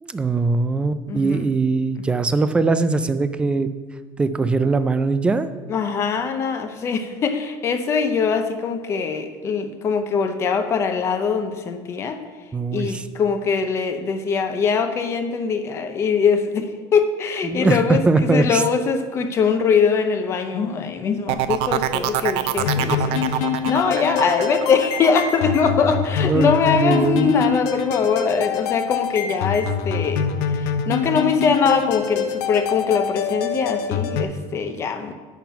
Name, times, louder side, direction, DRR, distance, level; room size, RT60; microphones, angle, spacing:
voice 1, 0.0-3.7 4.2-5.5 12.5-13.0 17.4-18.6 26.3-26.5 26.8-27.4, right 3 dB, 10° right, 11 dB, 0.3 m, -21 dB
voice 2, 1.1-1.5 5.7-12.2 12.7-35.1, left 5 dB, 30° left, 8 dB, 0.7 m, -22 dB
sound 1, 21.3-26.9 27.3-27.8, right 13 dB, 65° right, 0.5 m, -26 dB
sound 2, 22.6-34.2, left 7 dB, 85° left, 0.7 m, -25 dB
9.0 x 5.9 x 5.6 m, 1.4 s
cardioid pair, 170°, 10 cm